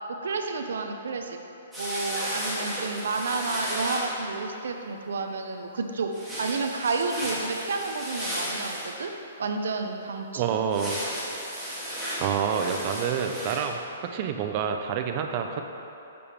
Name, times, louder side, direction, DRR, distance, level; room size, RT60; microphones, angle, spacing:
voice 1, 0.1-1.4 1.8-9.1 9.4-10.6, right 4 dB, 75° right, 5 dB, 0.6 m, -31 dB
sound 1, 1.7-4.1 6.1-8.9 10.7-13.7, equal, ahead, 1.0 m, -34 dB
voice 2, 10.3-11.0 12.2-15.6, right 7 dB, 30° right, 5 dB, 0.4 m, -28 dB
6.7 x 3.4 x 5.6 m, 3.0 s
hypercardioid pair, 175°, 0 cm